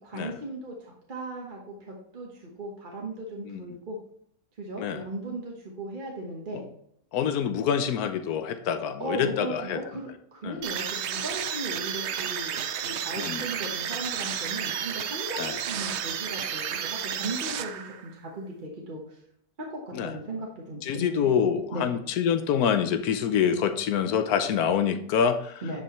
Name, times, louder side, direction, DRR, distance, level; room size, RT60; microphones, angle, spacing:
voice 1, 0.0-4.0 4.6-6.7 9.0-19.2 19.7-21.4 21.7-21.9 25.6-25.8, right 1 dB, 35° right, -1 dB, 1.3 m, -37 dB
voice 2, 7.1-9.8 10.4-10.6 13.2-13.4 15.4-15.5 19.9-20.1 20.8-25.6, left 8 dB, 85° left, 9 dB, 1.2 m, -26 dB
sound 1, 10.6-18.1, right 8 dB, 60° right, 0.8 m, -32 dB
10.0 x 5.5 x 3.1 m, 0.72 s
omnidirectional pair, 1.6 m